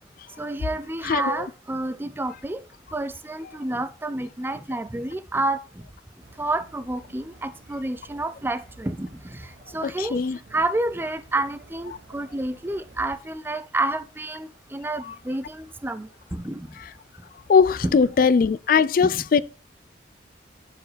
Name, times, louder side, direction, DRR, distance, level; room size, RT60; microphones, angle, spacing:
voice 1, 0.4-2.6 2.9-5.9 6.4-10.3 10.5-16.7 17.8-18.0 19.0-19.4, right 2 dB, 10° right, 0.4 m, -29 dB
voice 2, 1.0-1.4 9.8-10.4 15.0-15.1 16.8-16.9 17.5-19.4, left 5 dB, 50° left, 0.3 m, -20 dB
sound 1, 6.2-13.2, right 1 dB, 80° right, 1.8 m, -50 dB
12.0 x 4.7 x 3.2 m
head